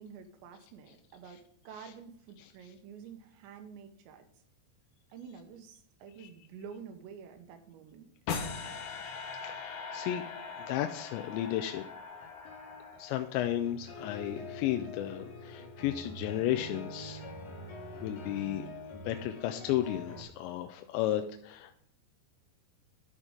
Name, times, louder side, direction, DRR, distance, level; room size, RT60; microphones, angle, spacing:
voice 1, 0.0-1.4 1.6-4.3 5.1-8.1, right 6 dB, 90° right, 6 dB, 3.3 m, -49 dB
sound 1, 8.3-13.5, left 5 dB, 75° left, 3.0 m, -41 dB
voice 2, 9.4-10.2 10.6-11.8 13.0-17.3 18.0-18.7 18.9-21.7, left 12 dB, 90° left, 6 dB, 2.9 m, -33 dB
sound 2, 12.1-20.2, left 1 dB, 50° left, 2.3 m, -45 dB
12.0 x 6.4 x 3.7 m, 0.71 s
omnidirectional pair, 5.1 m